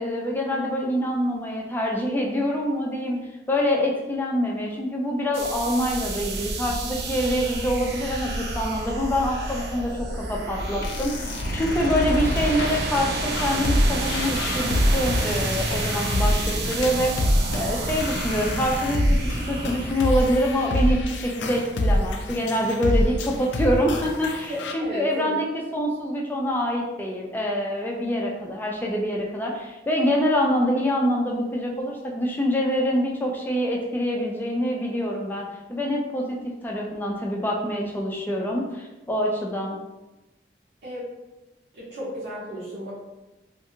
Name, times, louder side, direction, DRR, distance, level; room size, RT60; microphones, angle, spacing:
voice 1, 0.0-17.3 17.5-25.5 25.7-39.8, equal, 10° left, -1 dB, 0.4 m, -25 dB
sound 1, 5.3-20.7, right 2 dB, 60° right, 0.4 m, -30 dB
sound 2, 10.6-24.7, left 1 dB, 80° left, 0.4 m, -26 dB
voice 2, 24.5-25.4 40.8-41.0 41.7-42.9, equal, 75° right, -9 dB, 0.8 m, -34 dB
2.5 x 2.5 x 2.7 m, 1.0 s
head